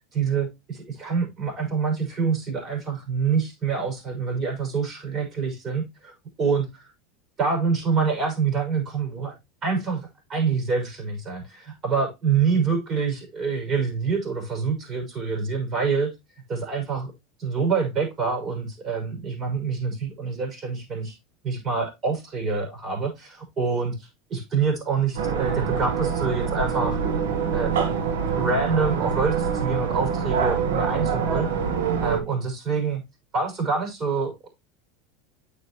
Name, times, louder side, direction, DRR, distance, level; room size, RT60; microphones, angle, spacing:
voice 1, 0.1-6.1 6.4-6.8 7.4-9.3 9.6-16.1 16.5-17.1 17.4-21.2 21.4-27.0 27.5-27.7 28.3-31.5 32.0-33.0 33.3-34.5, right 5 dB, 40° right, 6.1 m, -26 dB
sound 1, 25.2-32.2, right 6 dB, 75° right, 1.5 m, -25 dB
9.4 x 7.0 x 3.1 m
hypercardioid pair, 85°, 0 cm